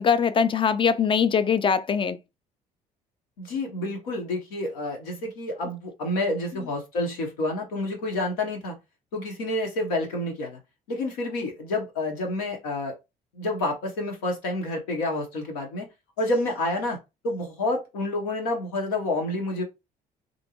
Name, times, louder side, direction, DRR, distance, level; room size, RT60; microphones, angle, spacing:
voice 1, 0.0-2.2, left 6 dB, 25° left, 0.4 m, -22 dB
voice 2, 3.4-8.7 9.1-10.6 10.9-12.9 13.3-15.9 16.2-17.0 17.2-19.6, left 2 dB, 85° left, 0.9 m, -29 dB
2.6 x 2.2 x 2.9 m
hypercardioid pair, 60°, 19 cm